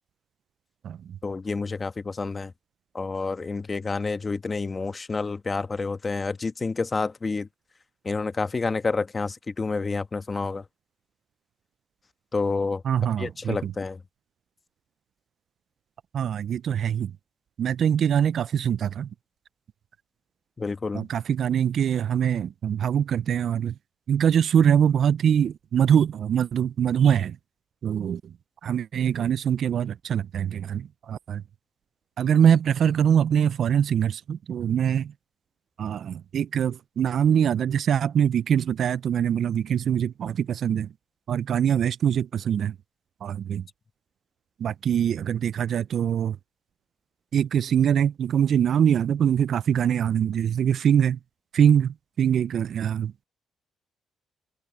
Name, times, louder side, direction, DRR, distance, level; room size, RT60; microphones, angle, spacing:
voice 1, 1.2-2.5 2.9-7.5 8.0-10.6 12.3-12.8 13.2-14.0 20.6-21.1, left 4 dB, 30° left, 1.3 m, -29 dB
voice 2, 12.9-13.7 16.1-17.1 17.6-19.1 20.9-23.7 24.1-27.4 27.8-28.2 28.6-31.4 32.2-35.1 35.8-40.9 41.3-42.7 43.2-43.6 44.6-46.4 47.3-51.2 51.5-53.2, right 8 dB, 60° right, 0.4 m, -23 dB
cardioid pair, 90°, 0 cm